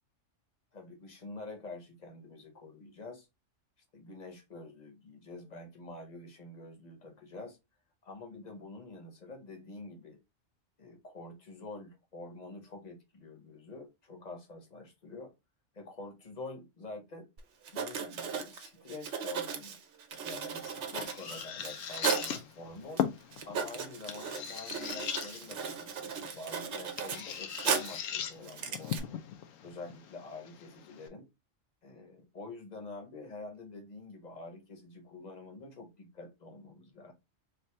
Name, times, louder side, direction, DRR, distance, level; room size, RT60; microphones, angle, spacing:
voice 1, 0.7-3.3 3.9-7.6 8.0-10.2 10.8-15.3 15.7-17.3 17.7-19.8 20.2-23.1 23.4-29.2 29.6-31.3 31.8-37.1, left 3 dB, 35° left, 1.0 m, -47 dB
Writing, 17.4-17.5 17.6-22.4 23.0-23.1 23.3-28.1 28.4-29.0, right 6 dB, 65° right, 1.0 m, -36 dB
sound 1, 20.1-31.1, left 9 dB, 90° left, 1.0 m, -40 dB
3.4 x 2.7 x 3.1 m
omnidirectional pair, 1.3 m